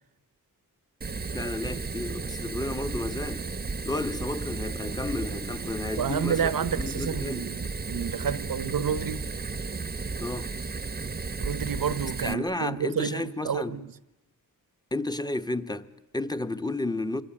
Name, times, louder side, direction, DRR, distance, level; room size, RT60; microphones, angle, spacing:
Fire, 1.0-12.3, right 4 dB, 25° right, 1.0 m, -34 dB
voice 1, 1.3-3.5 3.8-7.5 10.2-10.5 12.0-13.8 14.9-17.2, left 2 dB, 10° left, 1.2 m, -32 dB
voice 2, 6.0-9.3 11.4-13.9, right 7 dB, 70° right, 1.1 m, -30 dB
27.0 x 24.0 x 8.8 m
wide cardioid pair, 125°, 35 cm